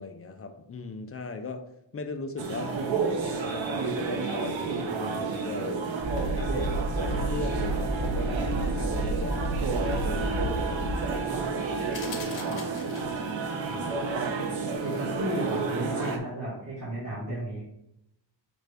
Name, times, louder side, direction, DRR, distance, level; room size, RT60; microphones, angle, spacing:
voice 1, 0.0-2.8 3.1-6.0 6.3-8.5 8.7-11.1 11.7-14.1 17.3-17.4, left 3 dB, 30° left, 7 dB, 0.4 m, -39 dB
sound 1, 2.4-16.2, right 4 dB, 80° right, 0.7 m, -31 dB
sound 2, 6.0-12.2, right 1 dB, 50° right, 1.3 m, -31 dB
sound 3, 11.9-13.4, left 5 dB, 80° left, 0.9 m, -42 dB
voice 2, 14.8-17.6, right 1 dB, 35° right, -9 dB, 1.7 m, -34 dB
5.5 x 2.6 x 3.3 m, 0.78 s
wide cardioid pair, 120°, 45 cm